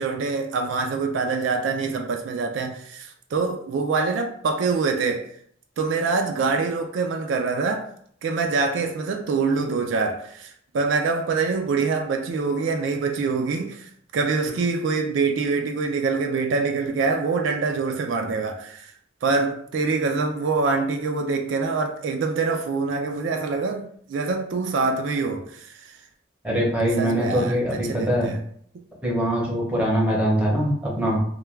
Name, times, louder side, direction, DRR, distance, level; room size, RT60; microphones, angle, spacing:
voice 1, 0.0-5.3 5.8-7.9 8.2-18.9 19.2-26.0 27.0-28.4, right 4 dB, 75° right, 0.3 m, -25 dB
voice 2, 26.4-28.3 29.0-31.2, equal, 5° right, 0.7 m, -23 dB
2.2 x 2.2 x 3.1 m
head